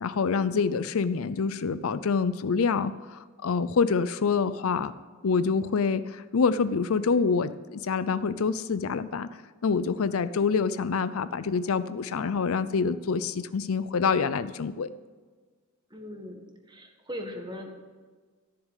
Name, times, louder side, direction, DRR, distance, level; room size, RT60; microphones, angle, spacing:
voice 1, 0.0-4.9 5.2-9.3 9.6-14.9, left 5 dB, 65° left, 14 dB, 0.5 m, -26 dB
voice 2, 15.9-16.4 16.7-17.7, equal, 20° right, 3 dB, 1.7 m, -39 dB
13.5 x 7.3 x 8.2 m, 1.4 s
head